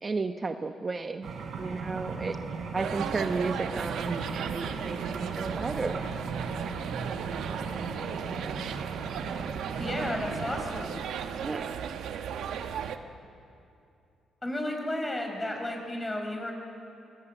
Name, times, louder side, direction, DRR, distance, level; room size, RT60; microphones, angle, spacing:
voice 1, 0.0-1.3 1.6-2.4 2.7-5.9 11.4-11.7, right 4 dB, 30° right, 7 dB, 0.9 m, -33 dB
sound 1, 1.2-10.6, right 4 dB, 60° right, 3.6 m, -37 dB
sound 2, 2.8-13.0, right 8 dB, 80° right, 1.2 m, -36 dB
voice 2, 9.8-11.0 14.4-16.5, left 1 dB, 20° left, 3 dB, 5.7 m, -33 dB
24.0 x 20.5 x 9.1 m, 2.6 s
cardioid pair, 90°, 0 cm